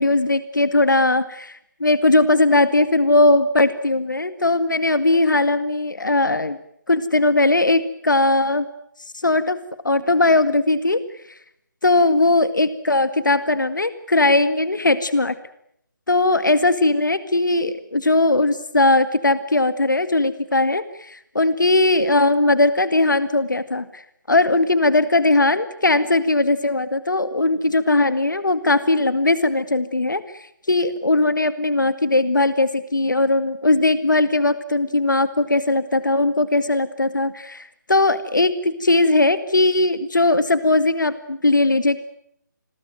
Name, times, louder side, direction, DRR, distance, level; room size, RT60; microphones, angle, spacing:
voice 1, 0.0-6.6 6.9-8.7 9.2-9.6 9.8-11.0 11.8-15.4 16.1-24.0 24.3-30.2 30.7-42.0, left 2 dB, 70° left, 12 dB, 1.9 m, -19 dB
29.5 x 22.0 x 9.2 m, 0.75 s
figure-of-eight pair, 150°, 11 cm